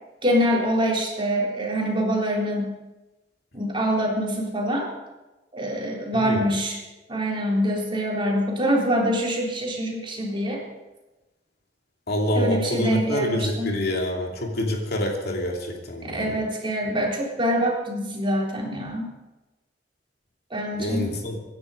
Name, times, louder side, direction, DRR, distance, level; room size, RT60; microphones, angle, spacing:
voice 1, 0.2-2.7 3.5-4.9 5.5-6.8 7.1-10.6 12.3-13.7 16.0-19.1 20.5-21.1, equal, 30° right, -2 dB, 3.8 m, -25 dB
voice 2, 6.1-6.5 12.1-16.4 20.7-21.4, left 1 dB, 60° left, 1 dB, 2.8 m, -26 dB
25.0 x 11.0 x 5.1 m, 1.1 s
head